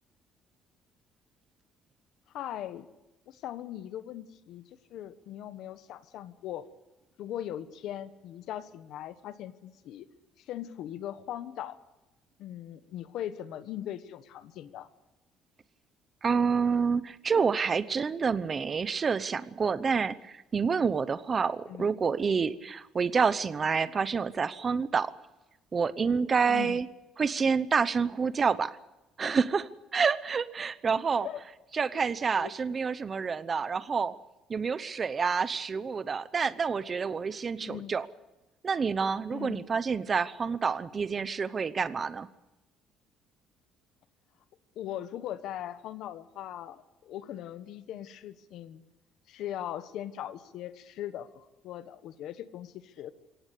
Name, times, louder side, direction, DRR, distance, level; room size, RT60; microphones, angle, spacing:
voice 1, 2.3-2.9 3.3-4.6 4.9-6.6 7.2-10.1 10.4-11.8 12.4-14.9 21.7-21.9 26.5-26.8 31.0-31.4 31.9-32.0 32.3-32.5 37.6-37.9 39.3-39.7 44.7-48.8 49.3-53.1, left 11 dB, 65° left, 12 dB, 1.3 m, -40 dB
voice 2, 16.2-25.1 25.7-26.9 27.2-28.8 29.2-34.1 34.5-38.1 38.6-42.3, right 5 dB, 25° right, 15 dB, 0.8 m, -28 dB
23.0 x 17.5 x 8.4 m, 1.0 s
cardioid pair, 165°, 0 cm